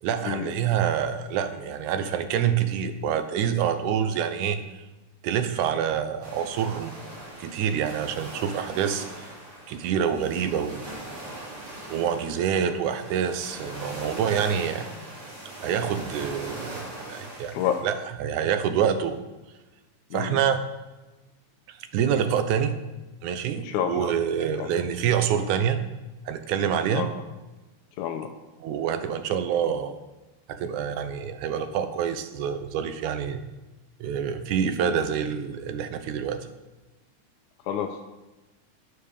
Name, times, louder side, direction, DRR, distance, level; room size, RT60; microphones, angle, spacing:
voice 1, 0.0-4.6 5.2-6.9 7.4-9.3 9.7-10.9 11.9-14.9 15.6-17.6 17.8-17.9 18.2-19.2 20.1-20.6 21.7-22.8 23.2-25.8 26.3-27.1 28.6-30.0 30.5-33.4 34.0-36.5, right 8 dB, 85° right, 9 dB, 2.3 m, -26 dB
sound 1, 6.2-17.8, right 1 dB, 55° right, 3.7 m, -40 dB
voice 2, 23.6-24.1 24.6-24.7 26.9-27.1 28.0-28.3 37.6-38.0, left 9 dB, 90° left, 4 dB, 2.1 m, -29 dB
9.6 x 7.3 x 6.5 m, 1.1 s
omnidirectional pair, 3.4 m